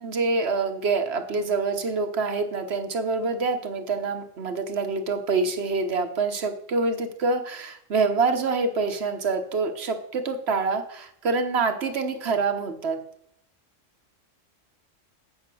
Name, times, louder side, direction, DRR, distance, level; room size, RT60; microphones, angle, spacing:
voice 1, 0.0-13.0, right 4 dB, 60° right, 7 dB, 1.2 m, -26 dB
8.6 x 5.7 x 6.2 m, 0.73 s
omnidirectional pair, 1.3 m